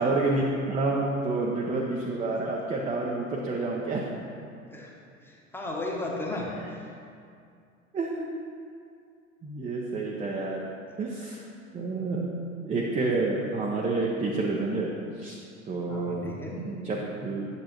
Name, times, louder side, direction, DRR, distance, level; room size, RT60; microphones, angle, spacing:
voice 1, 0.0-4.0 7.9-8.3 9.4-10.6 11.0-11.4 11.7-12.3 12.6-15.4 15.7-17.6, right 3 dB, 15° right, -2 dB, 0.7 m, -29 dB
voice 2, 5.2-6.5 15.9-16.6, left 2 dB, 5° left, -2 dB, 1.1 m, -34 dB
9.5 x 7.3 x 3.0 m, 2.4 s
figure-of-eight pair, 80°, 41 cm